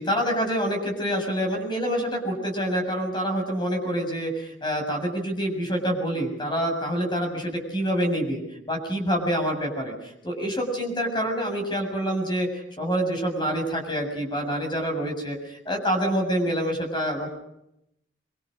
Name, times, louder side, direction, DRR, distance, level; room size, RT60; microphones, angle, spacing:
voice 1, 0.0-17.3, equal, 25° left, 3 dB, 7.1 m, -27 dB
26.5 x 24.5 x 6.5 m, 0.79 s
head